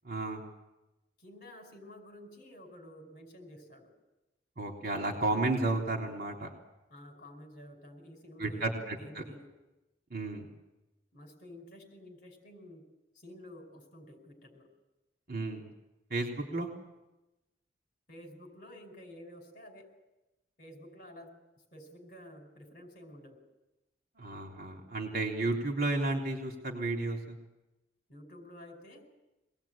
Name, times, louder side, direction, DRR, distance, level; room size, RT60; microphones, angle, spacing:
voice 1, 0.0-0.4 4.6-6.5 8.4-9.2 10.1-10.5 15.3-15.7 16.1-16.7 24.2-27.4, right 2 dB, 55° right, 1 dB, 3.6 m, -32 dB
voice 2, 1.2-3.9 6.9-8.7 9.0-9.5 11.1-12.8 13.1-14.7 18.1-19.9 20.6-21.3 21.7-23.4 28.1-29.0, left 1 dB, 45° left, 3 dB, 5.0 m, -51 dB
24.5 x 19.0 x 9.0 m, 1.0 s
head